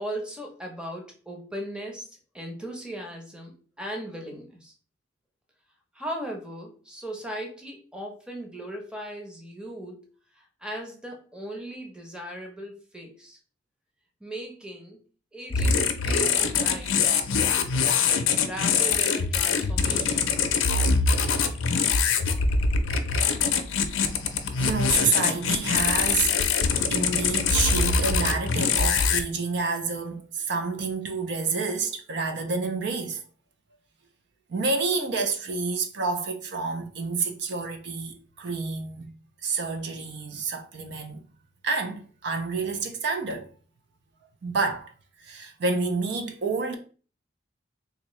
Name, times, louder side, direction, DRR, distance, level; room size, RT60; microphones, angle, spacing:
voice 1, 0.0-4.7 5.9-10.1 10.4-13.4 14.2-15.0 15.3-20.3, right 1 dB, 5° right, 0.7 m, -38 dB
sound 1, 15.5-29.2, left 5 dB, 90° left, 0.5 m, -23 dB
voice 2, 24.5-26.4 26.9-33.2 34.5-39.1 39.4-41.2 41.6-43.5 44.4-44.9 45.2-46.7, right 4 dB, 60° right, 0.5 m, -29 dB
3.6 x 2.7 x 3.1 m
head